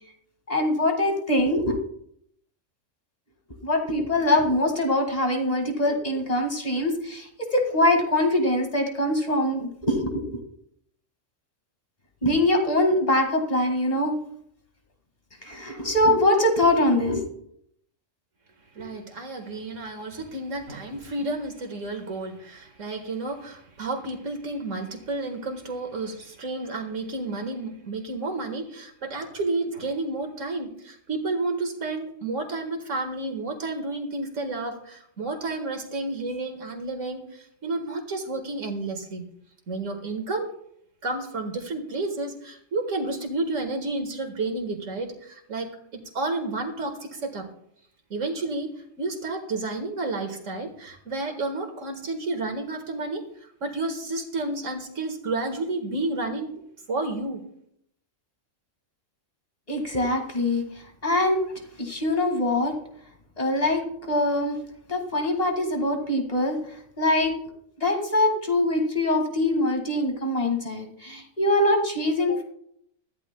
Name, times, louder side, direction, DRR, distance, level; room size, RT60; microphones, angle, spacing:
voice 1, 0.5-1.8 3.6-10.4 12.2-14.2 15.4-17.2 59.7-61.4 61.8-62.7 63.4-64.6 64.9-66.6 67.0-67.4 67.8-72.4, left 1 dB, 30° left, 3 dB, 2.1 m, -23 dB
voice 2, 18.7-39.3 39.7-40.5 41.0-47.5 48.1-56.6 56.9-57.4, right 2 dB, 75° right, 4 dB, 2.0 m, -31 dB
20.5 x 14.0 x 2.3 m, 0.71 s
omnidirectional pair, 1.3 m